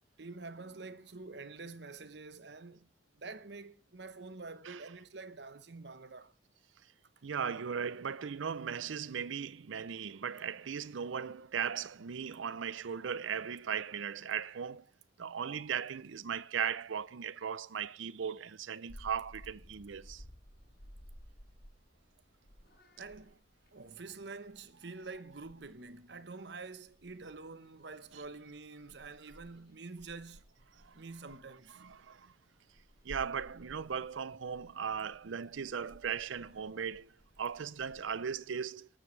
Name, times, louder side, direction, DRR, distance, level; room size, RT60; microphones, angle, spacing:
voice 1, 0.2-2.9 3.1-6.3 23.0-23.4 23.7-30.5 30.9-31.8, right 3 dB, 60° right, 1.0 m, -47 dB
voice 2, 7.2-14.9 15.2-20.2 28.1-28.2 30.8-31.0 31.8-32.3 33.0-38.9, right 7 dB, 90° right, 0.5 m, -38 dB
Purr / Meow, 18.9-38.4, equal, 55° left, 5.4 m, -58 dB
19.5 x 13.0 x 3.2 m
head